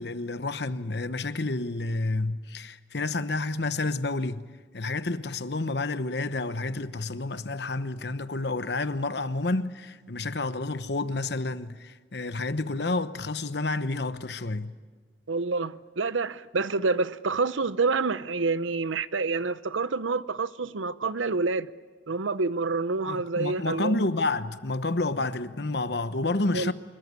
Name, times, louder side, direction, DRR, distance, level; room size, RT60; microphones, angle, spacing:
voice 1, 0.0-4.5 4.7-14.8 23.0-26.7, left 2 dB, 60° left, 1.0 m, -29 dB
voice 2, 15.3-21.7 22.1-24.0 26.5-26.7, right 4 dB, 90° right, 0.8 m, -28 dB
25.5 x 22.5 x 9.6 m
head